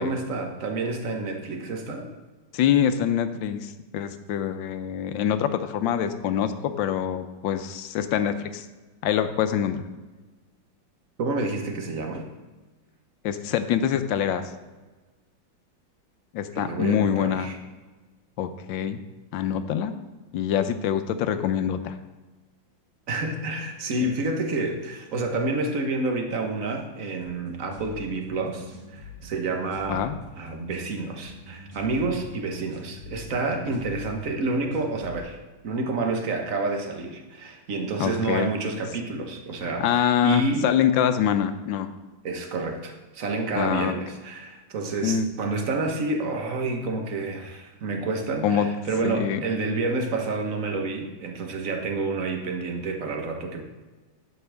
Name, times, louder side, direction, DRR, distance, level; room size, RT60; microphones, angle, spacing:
voice 1, 0.0-2.1 11.2-12.3 16.5-17.6 23.1-30.1 30.4-35.4 35.6-40.7 42.2-53.6, right 3 dB, 50° right, 3 dB, 1.4 m, -29 dB
voice 2, 2.5-8.7 9.0-9.8 13.2-14.4 16.3-17.5 18.4-19.0 19.3-19.9 20.3-21.9 29.9-30.1 38.0-38.5 39.6-41.9 43.6-44.0 45.0-45.3 48.4-48.7 49.0-49.4, left 9 dB, 80° left, 10 dB, 1.3 m, -25 dB
sound 1, 27.2-35.2, left 2 dB, 85° right, 4.3 m, -44 dB
11.0 x 7.7 x 3.5 m, 1.3 s
omnidirectional pair, 2.1 m